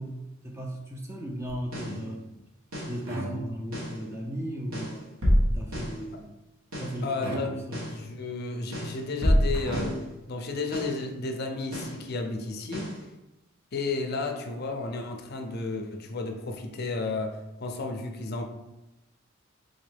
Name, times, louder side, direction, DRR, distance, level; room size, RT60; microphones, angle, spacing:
voice 1, 0.0-2.2 2.9-5.1 5.5-6.4 6.8-7.9, equal, 10° right, 0 dB, 0.4 m, -36 dB
sound 1, 1.6-2.0 2.7-3.0 3.7-4.0 4.7-6.0 6.7-7.0 7.7-8.0 8.7-10.0 10.7-11.0 11.7-12.0 12.7-13.0, equal, 90° right, 1.2 m, -28 dB
sound 2, 1.8-2.4 3.0-4.0 7.2-8.0 9.5-10.3, right 1 dB, 70° right, 0.9 m, -37 dB
voice 2, 7.0-7.5 7.9-10.0 10.3-12.9 13.7-18.4, left 3 dB, 50° left, 4 dB, 0.5 m, -32 dB
3.9 x 3.0 x 3.4 m, 0.94 s
head